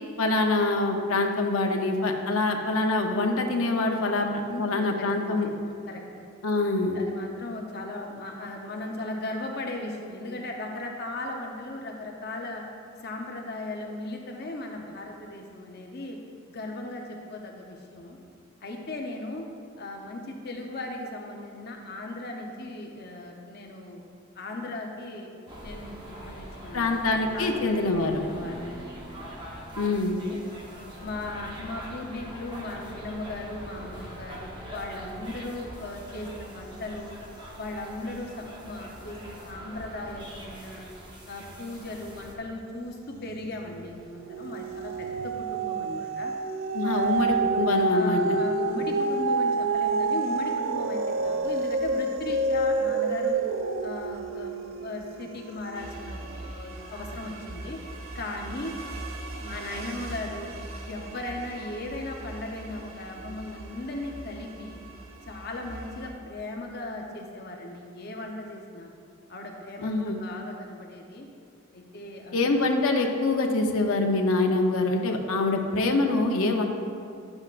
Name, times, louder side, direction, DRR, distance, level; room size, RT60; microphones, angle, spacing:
voice 1, 0.2-4.3 4.6-5.5 6.4-7.0 26.7-28.2 29.8-30.2 46.7-48.4 69.8-70.2 72.3-76.7, left 2 dB, 85° left, 2 dB, 0.7 m, -25 dB
voice 2, 4.5-5.5 5.9-6.0 6.6-12.6 13.0-16.2 16.5-18.2 18.6-19.5 19.8-24.0 24.3-25.3 25.6-27.0 27.3-27.8 28.1-29.2 29.8-30.4 31.0-37.2 37.6-40.9 41.3-46.3 46.8-47.4 47.9-53.4 53.8-57.8 58.1-58.7 59.4-60.5 60.8-64.8 65.3-68.9 69.3-71.3 71.7-72.5, left 2 dB, 50° left, 1 dB, 0.7 m, -37 dB
sound 1, 25.5-42.4, equal, 20° right, 1.0 m, -43 dB
sound 2, 43.2-43.7 44.1-56.6 57.1-57.2, right 3 dB, 65° right, 0.4 m, -28 dB
sound 3, 55.7-66.1, right 2 dB, 90° right, 1.0 m, -41 dB
10.5 x 7.8 x 2.5 m, 2.3 s
head